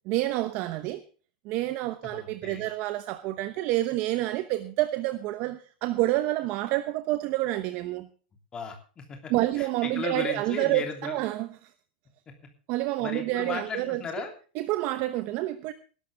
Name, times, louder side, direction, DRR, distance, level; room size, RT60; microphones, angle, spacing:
voice 1, 0.1-1.0 1.4-8.1 9.3-11.5 12.7-14.0 14.6-15.7, right 16 dB, 40° right, 1.0 m, -28 dB
voice 2, 2.0-2.7 8.5-11.2 12.3-12.4 13.0-14.3, left 5 dB, 15° left, 3.0 m, -36 dB
19.5 x 12.0 x 3.6 m
supercardioid pair, 165°, 5 cm